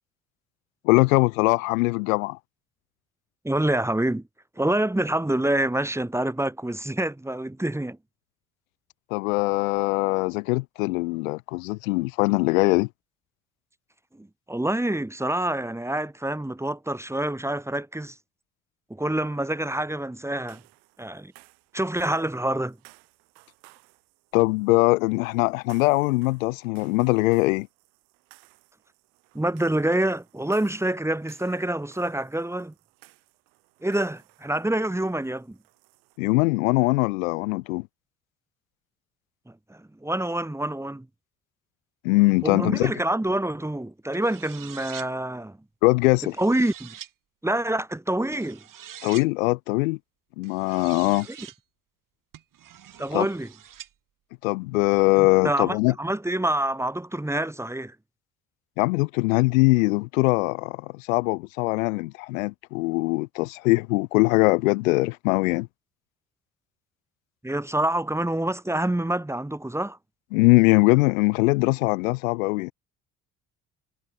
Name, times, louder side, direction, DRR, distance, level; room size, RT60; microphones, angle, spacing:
voice 1, 0.8-2.4 9.1-12.9 24.3-27.7 36.2-37.9 42.0-42.9 45.8-46.3 49.0-50.0 50.4-51.3 53.1-53.3 54.4-55.9 58.8-65.7 70.3-72.7, left 24 dB, 65° left, 0.7 m, -22 dB
voice 2, 3.4-4.2 4.6-8.0 14.1-18.2 18.9-20.6 21.0-21.3 21.7-22.8 29.3-32.7 33.8-35.6 39.5-41.1 42.4-45.6 46.4-46.9 47.4-48.6 51.4-51.5 53.0-53.5 55.2-58.0 67.4-70.0, right 1 dB, 5° right, 1.8 m, -27 dB
sound 1, 20.4-36.2, right 37 dB, 65° right, 6.1 m, -58 dB
sound 2, 44.1-45.1 46.0-47.1 48.3-49.3 50.4-51.6 52.3-53.9, right 10 dB, 45° right, 6.0 m, -44 dB
figure-of-eight pair, 50°, 44 cm